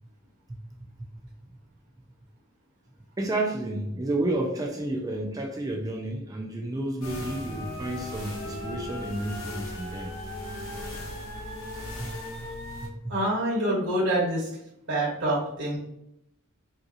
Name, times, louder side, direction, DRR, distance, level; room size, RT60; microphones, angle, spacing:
voice 1, 3.2-10.1 12.0-12.1 12.8-13.1, right 1 dB, 15° right, 0 dB, 0.4 m, -31 dB
sound 1, 7.0-12.9, left 1 dB, 60° left, 0.9 m, -37 dB
voice 2, 13.1-14.5 14.9-15.8, right 1 dB, 55° right, -6 dB, 1.1 m, -26 dB
3.7 x 2.7 x 2.5 m, 0.79 s
head